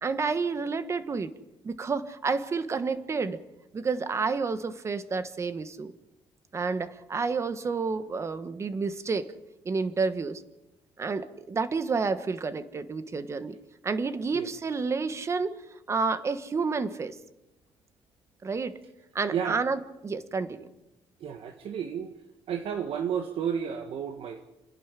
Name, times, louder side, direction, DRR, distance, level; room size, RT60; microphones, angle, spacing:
voice 1, 0.0-1.3 1.6-3.4 3.7-5.9 6.5-9.3 9.6-10.4 11.0-13.6 13.8-15.5 15.9-17.2 18.4-18.8 19.1-20.7, right 4 dB, 25° right, 12 dB, 1.3 m, -30 dB
voice 2, 21.2-22.1 22.5-24.4, right 8 dB, 65° right, 6 dB, 1.6 m, -32 dB
28.0 x 11.0 x 9.9 m, 0.94 s
cardioid pair, 145°, 10 cm